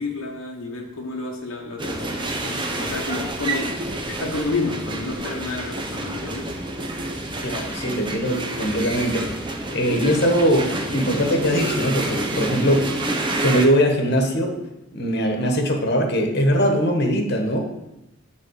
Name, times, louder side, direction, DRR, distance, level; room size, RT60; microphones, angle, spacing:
voice 1, 0.0-3.8 4.1-6.5, left 3 dB, 70° left, -1 dB, 1.0 m, -30 dB
sound 1, 1.8-13.7, right 1 dB, 20° right, 0.8 m, -28 dB
voice 2, 7.4-9.3 9.7-12.9 13.4-14.5 14.9-17.6, equal, 50° left, 3 dB, 1.3 m, -21 dB
9.3 x 3.9 x 6.4 m, 0.91 s
head